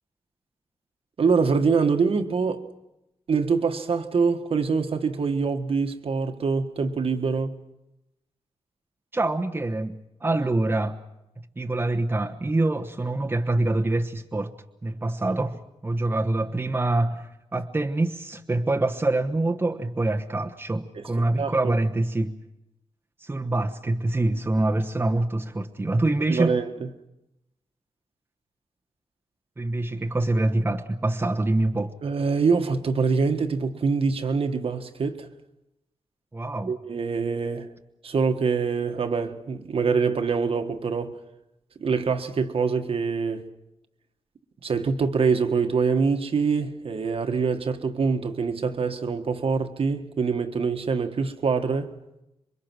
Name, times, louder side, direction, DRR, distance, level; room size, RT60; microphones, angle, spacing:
voice 1, 1.2-2.7 3.3-7.6 20.9-21.0 21.4-21.7 26.3-26.9 32.0-35.3 36.7-37.7 38.0-41.2 41.8-43.5 44.6-51.9, right 5 dB, 60° right, 1.5 m, -24 dB
voice 2, 9.1-11.0 11.6-14.5 14.8-22.4 23.2-26.6 29.6-32.0 36.3-36.7, right 2 dB, 20° right, 1.1 m, -25 dB
27.0 x 23.5 x 6.2 m
wide cardioid pair, 120°, 11 cm